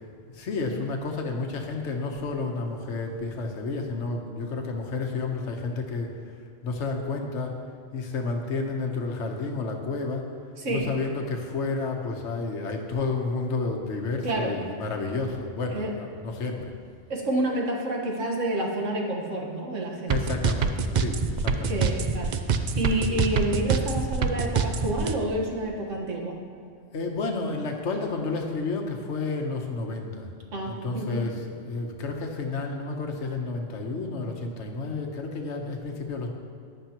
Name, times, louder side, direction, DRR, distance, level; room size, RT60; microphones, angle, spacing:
voice 1, 0.3-6.1 6.6-7.6 7.9-10.2 10.7-16.7 20.1-21.8 26.8-30.3 30.7-36.3, left 3 dB, 70° left, 2 dB, 1.3 m, -31 dB
voice 2, 10.6-10.9 14.2-14.6 15.7-15.9 17.1-20.2 21.7-26.4 30.5-31.2, right 1 dB, 85° right, 0 dB, 1.8 m, -29 dB
sound 1, 20.1-25.1, right 5 dB, 55° right, 0.5 m, -25 dB
15.0 x 10.0 x 3.0 m, 2.3 s
omnidirectional pair, 1.3 m